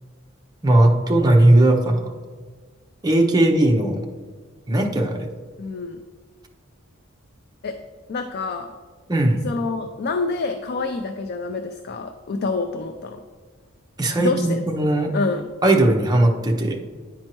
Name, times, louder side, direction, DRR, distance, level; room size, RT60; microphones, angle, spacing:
voice 1, 0.6-2.1 3.0-4.0 4.7-5.3 9.1-9.4 14.0-15.1 15.6-16.8, right 1 dB, 20° right, 1 dB, 0.7 m, -18 dB
voice 2, 5.6-6.0 7.6-7.8 8.1-8.7 9.4-13.2 14.2-14.6 15.1-15.5, left 3 dB, 50° left, 7 dB, 0.4 m, -27 dB
9.7 x 4.4 x 3.0 m, 1.5 s
head